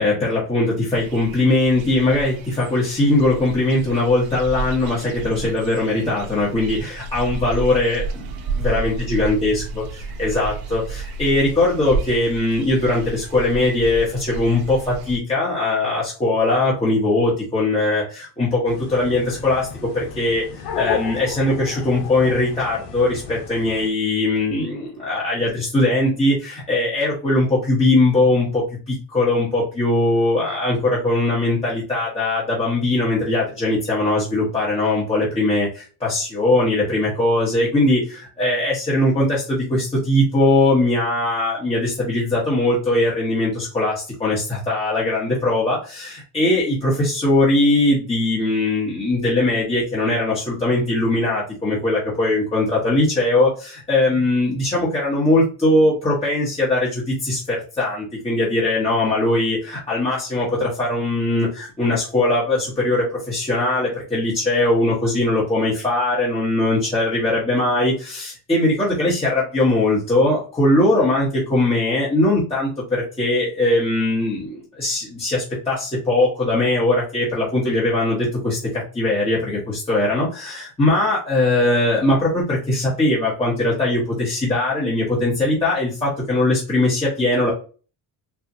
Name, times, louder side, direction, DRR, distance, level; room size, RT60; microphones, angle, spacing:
voice 1, 0.0-9.8 10.2-87.5, left 2 dB, 15° left, -6 dB, 1.2 m, -20 dB
sound 1, 0.9-15.2, right 4 dB, 65° right, 0.8 m, -32 dB
sound 2, 18.7-23.9, left 6 dB, 80° left, 1.0 m, -33 dB
4.5 x 2.4 x 2.6 m, 0.36 s
cardioid pair, 145°, 39 cm